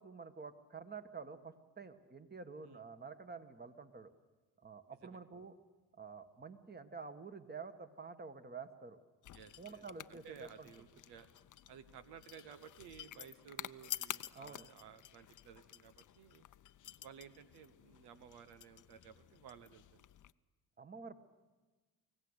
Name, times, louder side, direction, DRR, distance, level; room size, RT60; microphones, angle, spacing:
voice 1, 0.0-4.1 4.6-5.5 5.9-9.0 9.6-10.7 14.3-14.7 20.8-21.2, right 5 dB, 25° right, 9 dB, 1.7 m, -49 dB
voice 2, 4.9-5.2 9.3-9.8 10.1-11.3 11.7-16.4 17.0-20.0, right 8 dB, 90° right, 11 dB, 1.1 m, -56 dB
sound 1, 9.2-20.3, left 12 dB, 50° left, 0.7 m, -50 dB
25.0 x 17.0 x 8.3 m, 1.2 s
supercardioid pair, 65°, 38 cm